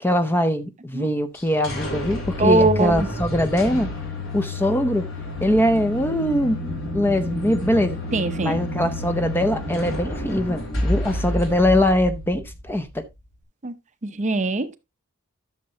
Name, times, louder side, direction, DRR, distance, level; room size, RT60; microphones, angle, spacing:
voice 1, 0.0-3.9 4.3-5.1 5.4-8.0 8.4-13.0, left 1 dB, 10° left, 0.6 m, -22 dB
sound 1, 1.4-13.0, left 1 dB, 60° left, 2.8 m, -30 dB
voice 2, 2.4-3.1 8.1-8.6 13.6-13.7 14.0-14.8, right 3 dB, 30° right, 0.6 m, -21 dB
12.0 x 6.6 x 2.8 m
head